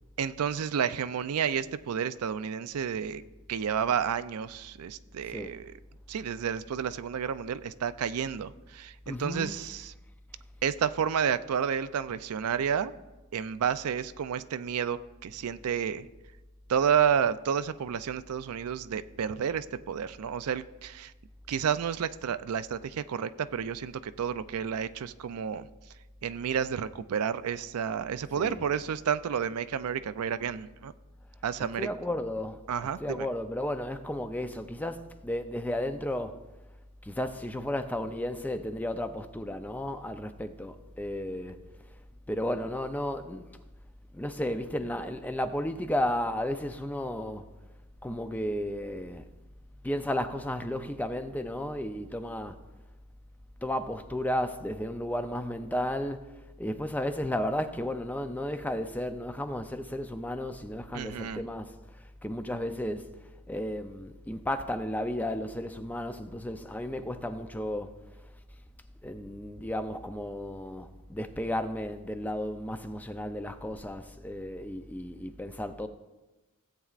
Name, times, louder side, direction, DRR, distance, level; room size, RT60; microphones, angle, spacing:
voice 1, 0.2-3.2 3.5-5.7 6.1-9.9 10.6-12.9 13.3-16.1 16.7-21.1 21.5-25.7 26.2-30.9 31.4-31.9 32.7-33.3 60.9-61.4, right 7 dB, 80° right, 0.4 m, -30 dB
voice 2, 9.1-9.6 28.4-28.6 31.8-32.6 33.0-36.4 37.0-41.6 42.3-43.6 44.1-47.5 48.0-49.2 49.8-52.6 53.6-63.1 63.5-67.9 69.0-75.9, left 1 dB, 5° left, 0.4 m, -33 dB
17.0 x 8.2 x 2.5 m
head